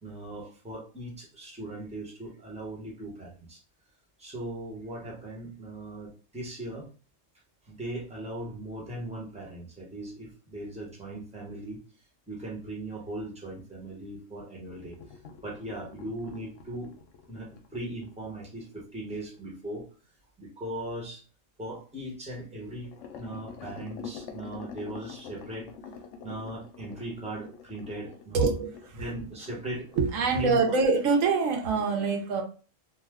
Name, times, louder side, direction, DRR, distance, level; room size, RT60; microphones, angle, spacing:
voice 1, 0.0-3.6 4.2-6.9 7.6-11.8 12.3-15.0 15.4-16.9 17.3-19.9 20.4-21.2 21.6-25.7 26.2-28.7 28.9-29.9 30.3-30.7, right 1 dB, 5° right, -4 dB, 0.9 m, -38 dB
sound 1, 14.7-19.4 22.8-29.6 29.9-30.1 30.4-30.6 31.0-31.1, left 6 dB, 75° left, 0.9 m, -46 dB
voice 2, 28.3-28.7 30.0-32.4, right 4 dB, 85° right, 2 dB, 1.1 m, -24 dB
2.7 x 2.1 x 3.5 m, 0.37 s
omnidirectional pair, 1.3 m